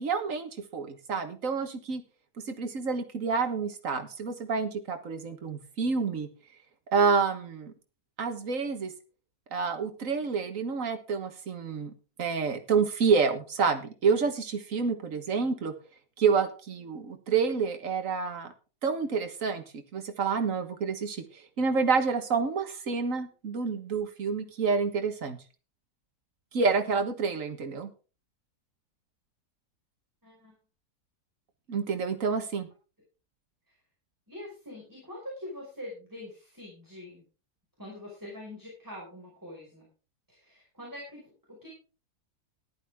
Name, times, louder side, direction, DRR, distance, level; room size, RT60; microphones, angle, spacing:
voice 1, 0.0-2.0 2.5-6.3 6.9-7.7 8.2-8.9 9.5-11.9 12.2-15.7 16.2-18.5 18.8-19.6 19.9-25.4 26.5-27.9 31.7-32.7, right 5 dB, 60° right, 7 dB, 1.8 m, -28 dB
voice 2, 30.2-30.5 33.7-33.8 34.3-37.2 37.8-39.9 40.3-41.7, left 1 dB, 10° right, -3 dB, 5.3 m, -44 dB
14.5 x 11.5 x 3.6 m, 0.35 s
omnidirectional pair, 1.6 m